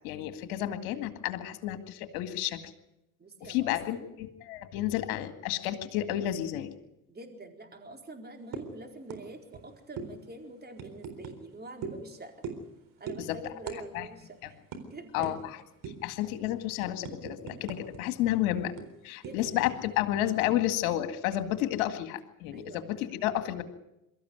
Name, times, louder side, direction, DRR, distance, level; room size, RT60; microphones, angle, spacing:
voice 1, 0.0-2.6 3.5-6.7 13.3-13.4 13.9-14.1 15.1-15.4 16.0-18.7 19.0-23.6, left 13 dB, 70° left, 9 dB, 2.1 m, -31 dB
voice 2, 3.2-4.1 7.1-12.5 13.0-14.6 14.9-15.4 18.3-18.5 19.2-19.8 22.5-23.6, right 2 dB, 25° right, 4 dB, 4.3 m, -46 dB
sound 1, 8.5-8.7 9.1-9.2 9.5-9.6 10.0-10.1 10.8-11.4 11.8-12.0 12.4-12.7 13.1-13.2 13.7-13.8 14.1-14.2 14.7-14.8 15.2-15.4 15.8-16.1 16.5-18.0 18.3-18.4 18.8-19.7, right 6 dB, 50° right, 4.0 m, -39 dB
23.0 x 14.0 x 9.6 m, 0.90 s
hypercardioid pair, 70°, 42 cm